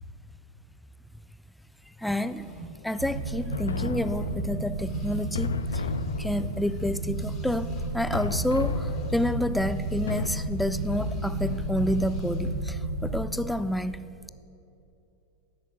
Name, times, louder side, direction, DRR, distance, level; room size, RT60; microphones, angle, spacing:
voice 1, 2.0-2.5 2.8-5.9 6.2-14.3, equal, ahead, 13 dB, 0.4 m, -29 dB
sound 1, 2.2-4.5 4.8-12.7, left 1 dB, 30° left, 2.1 m, -42 dB
sound 2, 3.0-13.2, right 2 dB, 80° right, 1.2 m, -32 dB
sound 3, 3.5-4.7 5.4-6.7 8.1-9.5 10.1-10.3, left 5 dB, 70° left, 0.4 m, -33 dB
12.0 x 6.5 x 7.3 m, 2.8 s
figure-of-eight pair, 90°, 0 cm